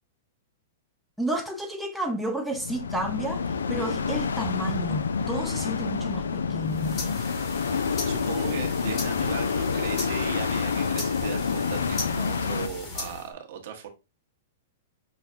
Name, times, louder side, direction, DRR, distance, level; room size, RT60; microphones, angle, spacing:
voice 1, 1.2-7.0, right 1 dB, ahead, 0.6 m, -31 dB
sound 1, 2.5-12.7, left 5 dB, 85° left, 0.3 m, -28 dB
sound 2, 6.6-13.3, left 3 dB, 40° left, 1.5 m, -37 dB
voice 2, 8.0-13.9, right 7 dB, 65° right, 0.9 m, -38 dB
5.7 x 2.2 x 2.5 m
hypercardioid pair, 120°, 0 cm